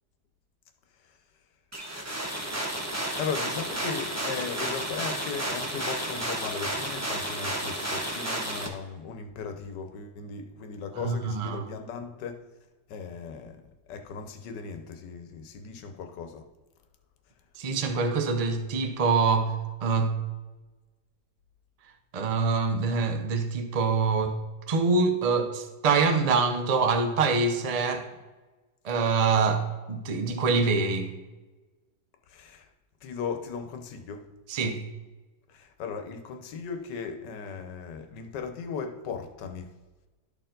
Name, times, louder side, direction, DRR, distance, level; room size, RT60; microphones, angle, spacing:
sound 1, 1.7-8.7, right 1 dB, 15° right, 0.6 m, -32 dB
voice 1, 3.2-12.4 12.9-13.6 13.9-16.4 32.3-32.7 33.0-34.2 35.5-39.7, left 6 dB, 90° left, 6 dB, 1.5 m, -37 dB
voice 2, 11.0-11.6 17.6-19.5 19.8-20.1 22.1-24.4 24.7-28.0 28.8-31.1 34.5-34.8, right 4 dB, 70° right, 6 dB, 0.3 m, -25 dB
12.0 x 4.4 x 3.8 m, 1.2 s
omnidirectional pair, 1.8 m